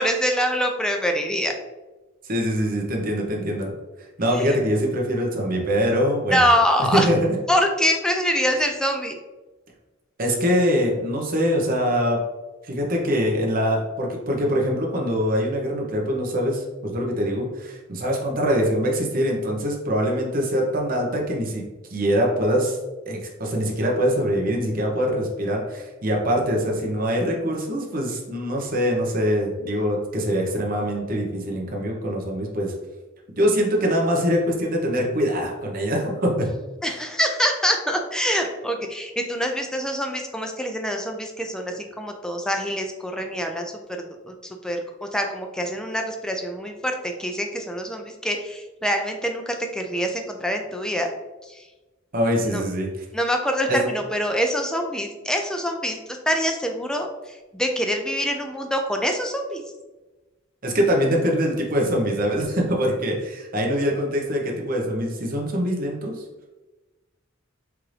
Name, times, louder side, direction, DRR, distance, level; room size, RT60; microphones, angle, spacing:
voice 1, 0.0-1.5 4.4-4.5 6.3-7.1 7.5-9.2 36.8-43.7 44.2-44.3 44.6-51.1 51.5-51.6 52.4-52.6 53.1-56.0 56.3-59.6, equal, 5° left, 3 dB, 0.3 m, -25 dB
voice 2, 2.2-3.7 4.2-6.4 6.9-7.2 10.2-12.2 12.7-21.6 21.9-22.8 23.1-32.7 33.4-36.5 52.1-53.0 53.7-53.8 60.6-66.1, equal, 45° right, -1 dB, 0.8 m, -23 dB
4.6 x 2.5 x 3.2 m, 1.1 s
head